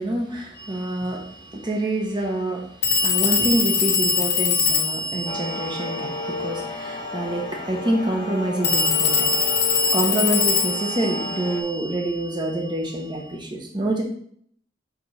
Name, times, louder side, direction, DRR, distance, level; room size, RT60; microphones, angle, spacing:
voice 1, 0.0-9.4 9.9-14.0, right 1 dB, 25° right, 0 dB, 0.9 m, -27 dB
Telephone, 0.6-0.7 2.8-6.5 8.6-12.3, left 5 dB, 65° left, 1.2 m, -23 dB
sound 1, 5.3-11.6, left 3 dB, 30° left, 0.9 m, -33 dB
4.9 x 4.1 x 5.6 m, 0.64 s
head